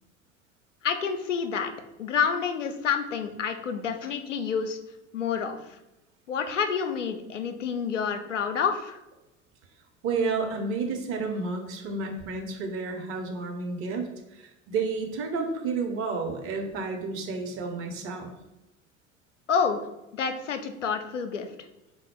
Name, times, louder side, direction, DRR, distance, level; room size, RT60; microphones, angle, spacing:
voice 1, 0.8-1.7 2.0-4.8 5.1-5.6 6.3-9.0 19.5-19.8 20.1-21.5, left 6 dB, 80° left, 7 dB, 0.5 m, -28 dB
voice 2, 10.0-18.3, right 4 dB, 40° right, 4 dB, 0.7 m, -31 dB
3.9 x 2.1 x 4.3 m, 0.95 s
figure-of-eight pair, 70°, 36 cm